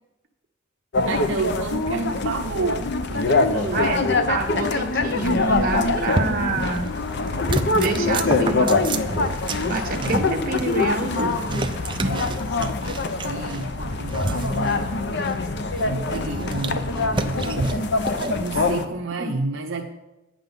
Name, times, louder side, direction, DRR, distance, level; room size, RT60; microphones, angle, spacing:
sound 1, 0.9-18.8, left 3 dB, 55° left, 0.7 m, -24 dB
voice 1, 1.1-3.9 5.5-5.8 6.2-6.3 9.4-10.1 11.5-14.9 15.8-18.0 18.3-19.9, right 3 dB, 65° right, 1 dB, 0.7 m, -31 dB
voice 2, 3.7-6.9 7.7-9.0 9.6-11.3 19.2-19.3, right 3 dB, 45° right, 2 dB, 1.2 m, -27 dB
sound 2, 5.2-6.9 7.2-18.4, right 2 dB, 25° right, 0.5 m, -30 dB
9.4 x 7.7 x 5.4 m, 0.98 s
head